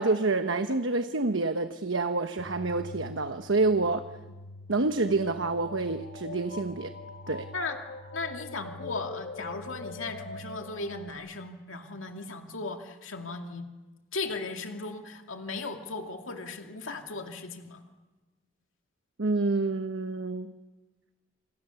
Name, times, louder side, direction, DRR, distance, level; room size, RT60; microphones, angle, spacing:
voice 1, 0.0-4.0 4.7-6.9 7.3-7.5 19.2-20.5, right 3 dB, 75° right, 8 dB, 1.1 m, -27 dB
sound 1, 2.4-11.1, left 3 dB, 50° left, 3.2 m, -43 dB
voice 2, 8.1-13.7 14.1-17.8, left 3 dB, 85° left, 4 dB, 2.2 m, -37 dB
29.0 x 26.5 x 7.0 m, 1.2 s
head